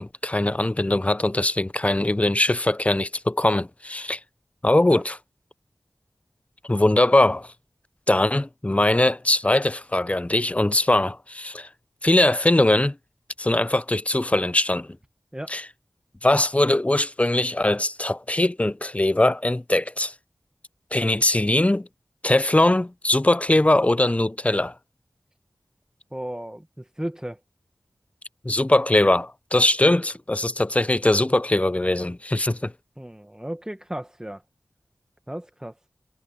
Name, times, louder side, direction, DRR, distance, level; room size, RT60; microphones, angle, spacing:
voice 1, 0.0-4.2 4.6-5.1 6.6-7.5 8.1-11.7 12.0-12.9 13.4-14.9 15.5-15.6 16.2-20.1 20.9-21.9 22.2-24.7 28.4-32.7, left 1 dB, 20° left, 0.6 m, -21 dB
voice 2, 4.6-5.0 15.3-15.6 26.1-27.4 29.8-30.0 33.0-34.4 35.3-35.8, right 1 dB, 10° right, 1.3 m, -35 dB
wide cardioid pair, 65°, 7 cm